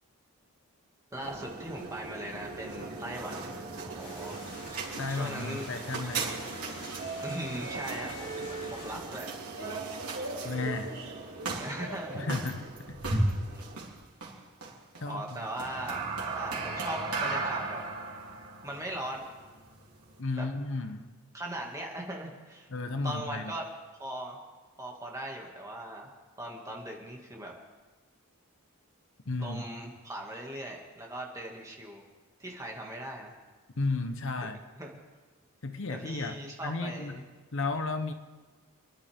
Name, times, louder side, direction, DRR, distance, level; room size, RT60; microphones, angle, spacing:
voice 1, 1.1-3.5 3.8-4.7 5.1-5.7 7.2-9.3 9.6-9.8 10.4-10.5 11.6-12.2 13.5-13.6 15.1-16.1 16.3-17.8 18.6-19.3 20.3-20.5 21.3-22.7 23.0-23.7 24.0-24.4 24.8-26.1 26.4-27.5 29.4-32.0 32.4-33.3 34.4-34.5 34.8-35.0 35.9-37.2, right 1 dB, 15° right, -1 dB, 2.1 m, -39 dB
sound 1, 1.1-20.2, right 3 dB, 90° right, 3.4 m, -36 dB
sound 2, 4.0-9.0, left 2 dB, 80° left, 5.6 m, -47 dB
voice 2, 5.0-6.3 10.4-11.1 12.1-13.3 15.0-15.5 20.2-21.1 22.7-23.6 29.3-29.6 33.8-34.6 35.6-38.1, left 3 dB, 60° left, 8 dB, 0.9 m, -34 dB
28.5 x 11.0 x 3.6 m, 1.3 s
head